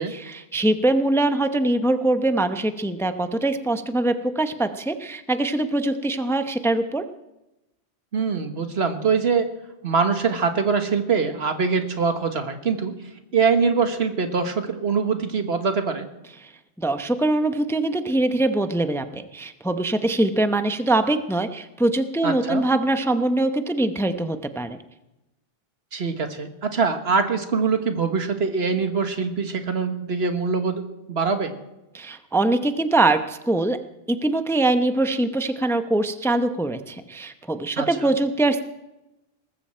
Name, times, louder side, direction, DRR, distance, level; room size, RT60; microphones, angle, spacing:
voice 1, 0.1-7.0 16.4-16.5 16.8-24.8 31.9-33.8 34.1-38.6, right 2 dB, 5° left, 8 dB, 0.7 m, -23 dB
voice 2, 8.1-9.5 9.8-12.9 13.3-16.1 22.2-22.6 25.9-30.8 31.1-31.5 37.8-37.9, right 5 dB, 75° right, 7 dB, 1.7 m, -23 dB
19.5 x 15.0 x 4.4 m, 0.94 s
omnidirectional pair, 1.1 m